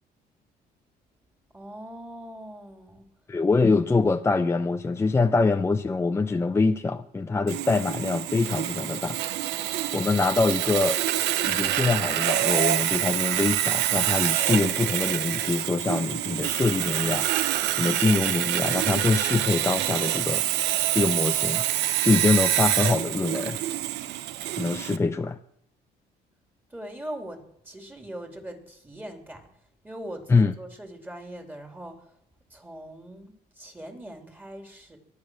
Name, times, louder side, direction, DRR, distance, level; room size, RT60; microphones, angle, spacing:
voice 1, 1.5-3.1 26.7-29.5 29.8-32.0 32.5-35.0, right 1 dB, 10° right, 4 dB, 3.2 m, -41 dB
voice 2, 3.3-9.2 9.9-11.0 11.4-17.3 17.7-20.4 20.9-21.7 22.0-23.6 24.6-25.4 30.3-30.5, left 3 dB, 15° left, 7 dB, 0.6 m, -24 dB
Sawing, 7.5-25.0, right 13 dB, 85° right, 0.8 m, -26 dB
23.0 x 8.4 x 6.3 m, 0.71 s
cardioid pair, 110°, 17 cm